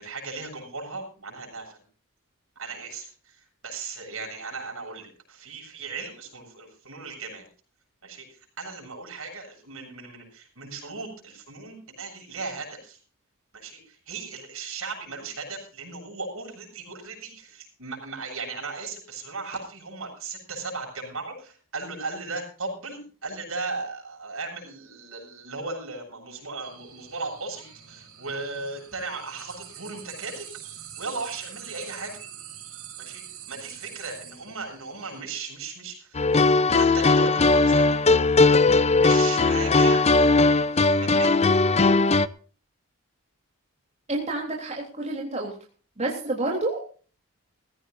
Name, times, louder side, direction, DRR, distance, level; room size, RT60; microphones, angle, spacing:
voice 1, 0.0-1.8 2.6-7.4 8.0-13.0 13.5-30.5 31.0-32.1 33.0-38.3 38.8-40.0 40.7-41.4, right 3 dB, 70° right, 1 dB, 7.7 m, -37 dB
sound 1, 26.6-35.2, right 10 dB, 85° right, 6.0 m, -44 dB
sound 2, 36.2-42.3, left 3 dB, 30° left, 0.6 m, -19 dB
voice 2, 44.1-45.5 46.0-46.8, right 2 dB, 30° right, -1 dB, 3.4 m, -29 dB
20.5 x 15.5 x 2.6 m, 0.39 s
head